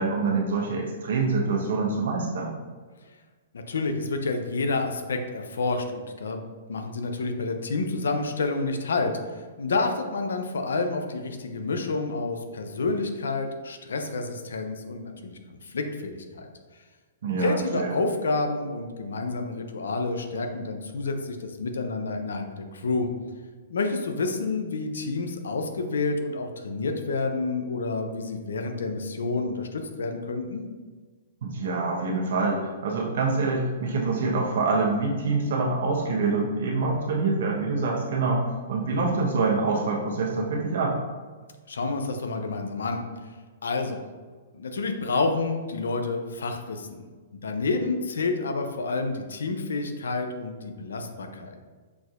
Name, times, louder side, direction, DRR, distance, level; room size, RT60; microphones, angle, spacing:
voice 1, 0.0-2.5 17.2-17.9 31.4-41.0, right 3 dB, 70° right, -2 dB, 1.0 m, -26 dB
voice 2, 3.5-6.4 6.7-16.5 17.4-23.1 23.7-30.6 41.7-43.0 43.6-44.0 44.5-47.0 47.4-51.5, left 3 dB, 85° left, 5 dB, 0.5 m, -29 dB
6.1 x 2.6 x 2.5 m, 1.4 s
hypercardioid pair, 135°, 0 cm